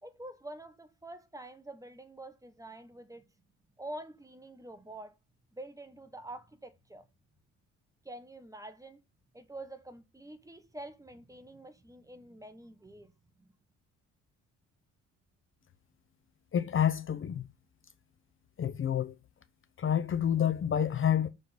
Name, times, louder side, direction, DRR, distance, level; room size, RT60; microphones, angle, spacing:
voice 1, 0.0-3.3 3.8-5.1 5.5-7.1 8.0-9.0 9.3-13.1 13.4-13.5, right 1 dB, 10° right, 1.1 m, -47 dB
voice 2, 16.5-17.4 18.6-19.2 19.8-21.3, left 9 dB, 45° left, 0.7 m, -28 dB
6.6 x 3.7 x 5.1 m
cardioid pair, 90°, 30 cm